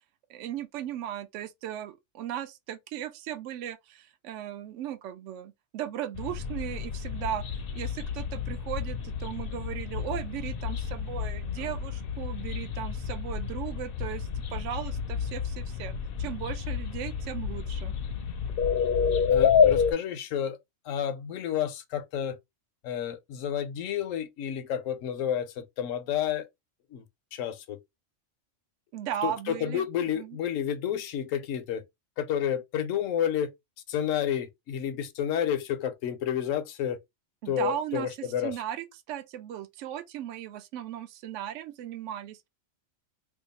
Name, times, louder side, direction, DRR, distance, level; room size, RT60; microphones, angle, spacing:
voice 1, 0.3-7.4 7.7-15.9 16.2-17.9 28.9-29.8 30.1-30.4 37.4-42.5, right 11 dB, 70° right, 0.9 m, -37 dB
sound 1, 6.1-19.9, left 7 dB, 60° left, 0.6 m, -29 dB
voice 2, 19.3-20.6 20.8-22.4 22.8-26.5 26.9-27.0 27.3-27.8 29.2-31.8 32.2-33.5 33.9-37.0 37.5-38.5, left 9 dB, 80° left, 1.0 m, -30 dB
2.8 x 2.3 x 3.9 m
omnidirectional pair, 1.4 m